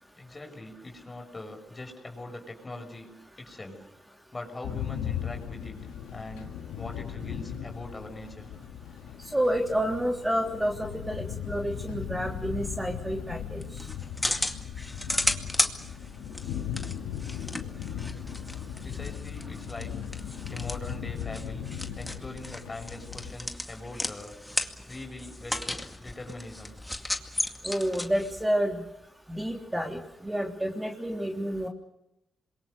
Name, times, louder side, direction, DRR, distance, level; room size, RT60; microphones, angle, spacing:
voice 1, 0.2-3.1 3.4-3.8 4.3-5.8 6.1-6.5 6.8-8.5 16.9-17.5 18.8-19.9 20.5-21.7 21.9-24.4 24.8-26.7, left 2 dB, 35° left, 3 dB, 6.5 m, -42 dB
sound 1, 4.6-23.3, left 9 dB, 85° left, 2.0 m, -38 dB
voice 2, 9.3-13.6 27.6-28.8 29.3-31.7, equal, 15° right, 1 dB, 3.3 m, -29 dB
sound 2, 13.6-28.4, left 1 dB, 10° left, 2.2 m, -35 dB
27.0 x 22.5 x 6.8 m, 0.87 s
supercardioid pair, 45°, 0 cm